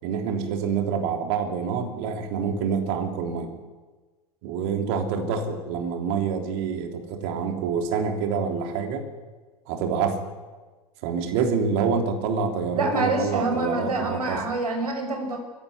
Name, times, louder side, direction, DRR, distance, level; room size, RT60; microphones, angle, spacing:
voice 1, 0.0-3.6 4.4-9.1 9.7-10.2 11.0-14.4, right 6 dB, 45° right, 5 dB, 3.3 m, -27 dB
voice 2, 12.7-15.4, right 2 dB, 75° right, 3 dB, 6.1 m, -26 dB
22.5 x 15.0 x 9.8 m, 1.3 s
figure-of-eight pair, 90°, 20 cm